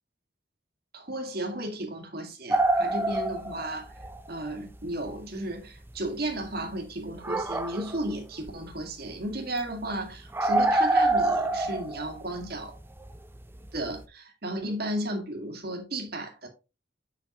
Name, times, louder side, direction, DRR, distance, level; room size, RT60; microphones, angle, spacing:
voice 1, 0.9-3.9 4.3-12.7 13.7-16.5, right 1 dB, 55° right, 1.9 m, -34 dB
sound 1, 2.5-4.2 4.5-4.6 5.1-5.2 5.9-6.0 7.1-8.1 8.4-8.7 9.1-9.2 9.6-9.7 9.8-9.9 10.3-13.4 13.7-14.0, right 2 dB, 10° right, 0.5 m, -26 dB
7.5 x 5.8 x 2.9 m
head